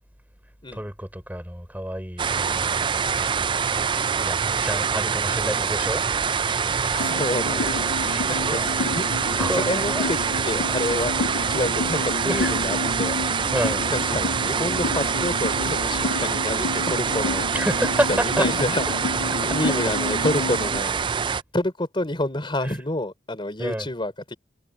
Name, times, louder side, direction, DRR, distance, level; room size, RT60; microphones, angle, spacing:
voice 1, 0.7-2.8 3.1-3.5 4.2-6.0 8.0-8.7 9.3-10.1 12.2-12.6 13.3-13.8 17.5-18.5 19.6-19.7 22.6-22.7 23.6-23.9, right 1 dB, 10° right, 5.9 m, -29 dB
sound 1, 2.2-21.4, right 6 dB, 25° right, 0.4 m, -25 dB
voice 2, 6.9-11.2 11.5-13.2 13.9-17.4 18.1-21.0 21.5-24.4, left 1 dB, 25° left, 4.2 m, -29 dB
sound 2, 7.0-20.8, left 3 dB, 80° left, 0.6 m, -31 dB
head